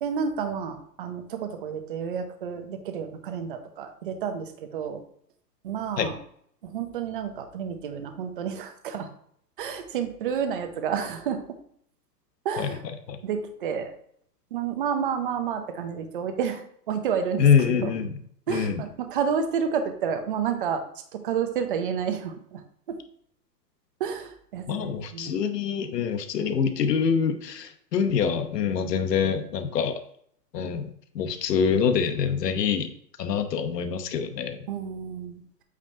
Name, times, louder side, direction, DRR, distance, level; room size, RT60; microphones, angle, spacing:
voice 1, 0.0-5.0 5.6-6.2 6.6-9.1 9.6-11.4 12.4-12.8 13.2-13.9 14.5-17.9 18.5-20.8 21.1-22.6 22.9-23.0 24.0-25.4 34.7-35.4, right 7 dB, 35° right, 7 dB, 0.6 m, -30 dB
voice 2, 17.4-18.2 18.5-18.8 24.7-30.0 30.5-30.9 31.1-32.9 33.2-34.7, left 7 dB, 75° left, 9 dB, 1.1 m, -25 dB
8.5 x 5.1 x 2.8 m, 0.65 s
hypercardioid pair, 165°, 48 cm